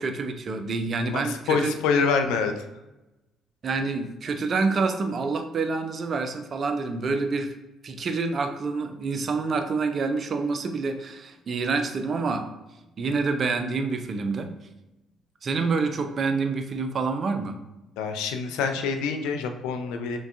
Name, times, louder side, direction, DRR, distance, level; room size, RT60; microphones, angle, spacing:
voice 1, 0.0-1.7 3.6-7.5 7.8-12.5 13.0-14.5 15.4-17.6, right 4 dB, 45° right, 7 dB, 0.5 m, -27 dB
voice 2, 1.3-2.5 18.0-20.2, left 5 dB, 70° left, 6 dB, 0.4 m, -26 dB
5.9 x 2.3 x 2.4 m, 1.0 s
hypercardioid pair, 50°, 0 cm